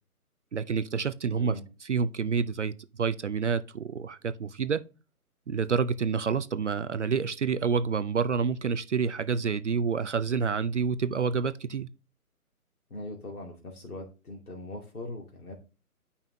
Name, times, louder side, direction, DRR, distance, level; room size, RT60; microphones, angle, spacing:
voice 1, 0.5-4.8 5.5-11.9, right 6 dB, 50° right, 0.6 m, -28 dB
voice 2, 12.9-15.5, left 2 dB, 70° left, 2.5 m, -40 dB
11.0 x 5.6 x 2.7 m
figure-of-eight pair, 155°, 45 cm